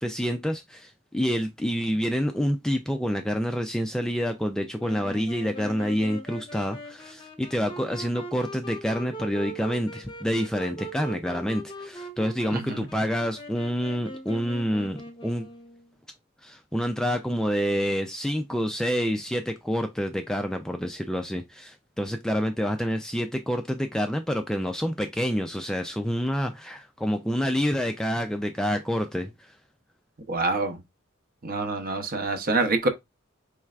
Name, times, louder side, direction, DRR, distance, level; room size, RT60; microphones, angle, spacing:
voice 1, 0.0-15.5 16.4-29.5, equal, 5° left, 0.3 m, -28 dB
Wind instrument woodwind instrument, 4.8-15.9, right 1 dB, 25° left, 0.7 m, -40 dB
voice 2, 12.5-12.9 30.3-30.8 31.4-32.9, right 3 dB, 45° right, 0.7 m, -26 dB
4.5 x 3.2 x 2.3 m
head